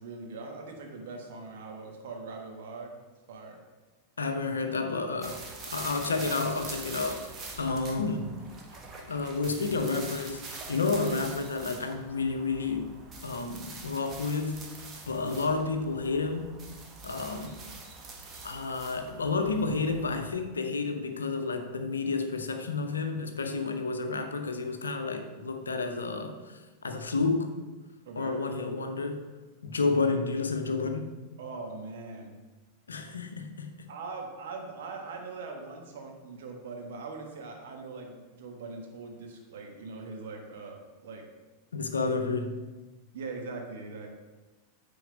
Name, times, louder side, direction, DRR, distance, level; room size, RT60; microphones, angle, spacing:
voice 1, 0.0-2.9 3.3-3.6 28.0-28.4 31.4-32.3 33.9-41.3 41.9-42.1 43.1-44.1, right 3 dB, 55° right, 2 dB, 1.4 m, -41 dB
voice 2, 4.2-8.4 9.1-12.9 13.2-14.7 15.1-16.6 17.0-17.6 18.4-27.6 28.2-29.2 29.6-31.1 32.9-33.9 41.7-42.7, left 4 dB, 75° left, 6 dB, 0.7 m, -31 dB
sound 1, 5.2-20.3, right 3 dB, 25° right, 1.2 m, -44 dB
9.1 x 3.9 x 4.9 m, 1.2 s
figure-of-eight pair, 90°, 0 cm